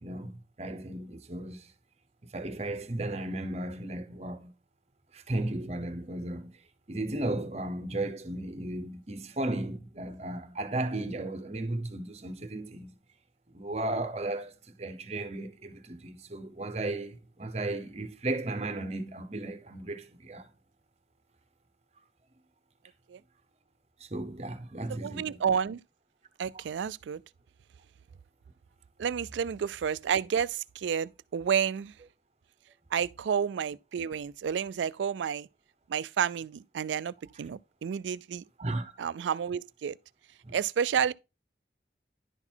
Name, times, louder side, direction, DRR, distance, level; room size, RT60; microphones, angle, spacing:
voice 1, 0.0-1.7 2.3-4.5 5.1-6.5 6.9-13.0 13.5-14.5 14.8-20.5 24.0-25.4 38.6-38.9 40.4-40.5, right 2 dB, 35° right, 0.9 m, -35 dB
voice 2, 24.9-25.8 26.4-27.2 29.0-31.9 32.9-35.5 35.9-38.4 39.0-40.0 40.5-41.1, right 7 dB, 90° right, 0.3 m, -30 dB
11.0 x 4.0 x 4.5 m
head